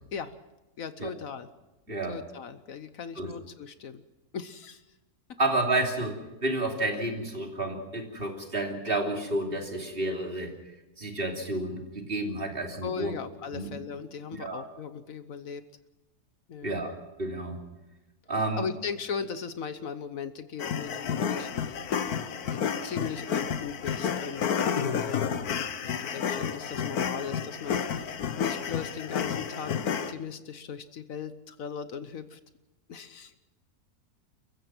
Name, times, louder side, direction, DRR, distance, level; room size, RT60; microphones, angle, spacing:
voice 1, 0.8-1.5 2.1-4.0 4.3-4.8 12.8-15.6 16.5-16.8 18.5-21.8 22.5-24.5 25.0-25.4 25.9-28.1 28.4-32.4 32.9-33.4, left 6 dB, 65° left, 12 dB, 1.3 m, -38 dB
voice 2, 5.4-10.5 11.0-13.1 13.5-13.7 14.4-14.6 16.6-16.9 17.2-17.6 18.3-18.7, right 2 dB, 35° right, 1 dB, 3.2 m, -30 dB
sound 1, 20.6-30.1, left 7 dB, 85° left, 1.5 m, -31 dB
29.5 x 15.0 x 6.1 m, 1.0 s
omnidirectional pair, 1.6 m